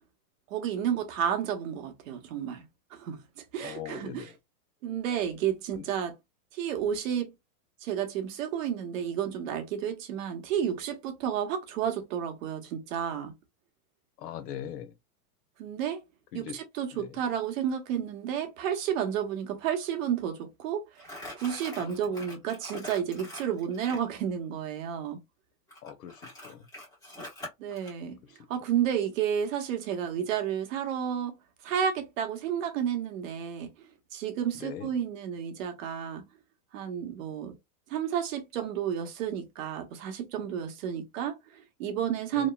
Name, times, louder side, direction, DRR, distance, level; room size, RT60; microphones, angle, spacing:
voice 1, 0.5-2.6 2.9-4.3 4.8-6.2 6.5-7.3 7.8-13.3 15.6-16.0 16.3-21.1 21.3-25.2 27.6-28.2 28.5-31.3 31.6-33.7 34.1-36.2 36.7-37.6 37.9-42.5, right 9 dB, 55° right, 1.0 m, -31 dB
voice 2, 3.6-4.3 5.8-5.9 14.2-14.9 16.3-16.6 17.0-17.2 21.8-22.0 25.8-26.7 34.6-34.9 42.3-42.5, left 10 dB, 90° left, 0.8 m, -41 dB
Crumpling crinkling, 21.0-24.1 25.7-27.9, left 1 dB, 10° left, 1.1 m, -43 dB
3.0 x 2.2 x 2.2 m
supercardioid pair, 150°, 46 cm